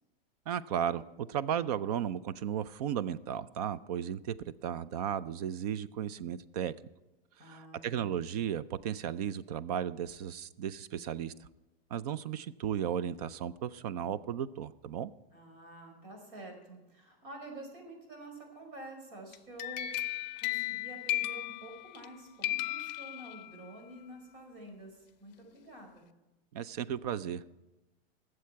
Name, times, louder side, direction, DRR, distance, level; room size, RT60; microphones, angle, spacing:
voice 1, 0.5-4.4 4.6-6.7 7.4-11.5 11.9-15.1 26.5-27.5, right 9 dB, 40° right, 17 dB, 0.4 m, -35 dB
voice 2, 7.4-8.1 15.3-19.9 20.4-26.1, right 1 dB, 60° right, 3 dB, 4.7 m, -49 dB
sound 1, 19.3-22.1 22.4-23.7, left 15 dB, 45° left, 0.5 m, -35 dB
21.0 x 7.7 x 4.6 m, 1.0 s
supercardioid pair, 170°, 30 cm